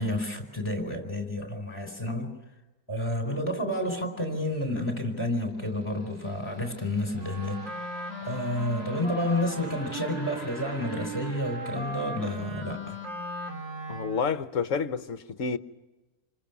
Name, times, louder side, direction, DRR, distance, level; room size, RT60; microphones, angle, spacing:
voice 1, 0.0-2.4 2.9-7.9 8.2-13.0, left 1 dB, 15° left, 4.6 m, -30 dB
sound 1, 4.7-12.4, equal, 25° right, 6.7 m, -48 dB
Wind instrument woodwind instrument, 7.2-14.4, right 2 dB, 50° right, 3.8 m, -38 dB
voice 2, 13.9-15.6, left 5 dB, 55° left, 1.4 m, -29 dB
28.5 x 24.5 x 6.1 m
omnidirectional pair, 1.6 m